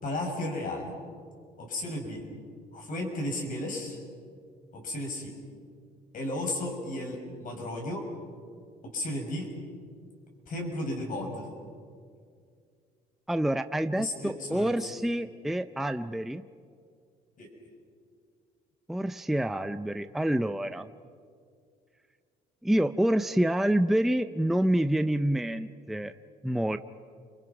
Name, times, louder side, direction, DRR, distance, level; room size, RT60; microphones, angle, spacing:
voice 1, 0.0-0.9 1.6-2.2 2.7-4.0 4.7-5.3 6.1-8.0 8.8-9.5 10.5-11.5 13.9-14.9 17.4-17.5, left 1 dB, 50° left, 1 dB, 6.7 m, -34 dB
voice 2, 13.3-16.4 18.9-20.9 22.6-26.1 26.4-26.8, right 1 dB, ahead, 9 dB, 0.6 m, -27 dB
30.0 x 24.0 x 6.1 m, 2.2 s
cardioid pair, 110°, 17 cm